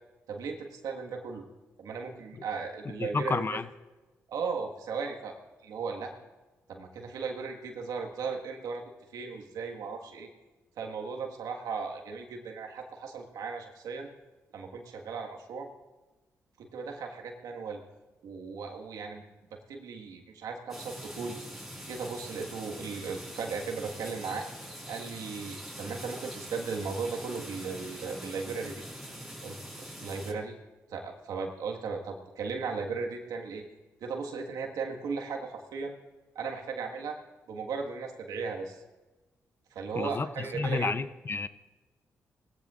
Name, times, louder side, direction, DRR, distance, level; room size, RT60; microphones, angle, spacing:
voice 1, 0.3-1.4 1.8-3.6 4.3-5.3 5.6-6.1 6.7-8.8 9.1-10.3 10.8-14.1 14.5-15.7 16.6-17.8 18.2-19.2 19.7-21.4 21.9-24.5 24.9-28.8 29.4-30.5 30.9-33.6 34.0-35.9 36.3-37.2 37.5-38.8 39.7-40.9, right 5 dB, 80° right, 2 dB, 1.6 m, -36 dB
voice 2, 3.0-3.7 39.9-41.5, left 4 dB, 40° left, 14 dB, 0.6 m, -31 dB
sound 1, 20.7-30.3, equal, 5° right, 4.3 m, -44 dB
19.5 x 14.5 x 2.5 m, 1.2 s
supercardioid pair, 50°, 6 cm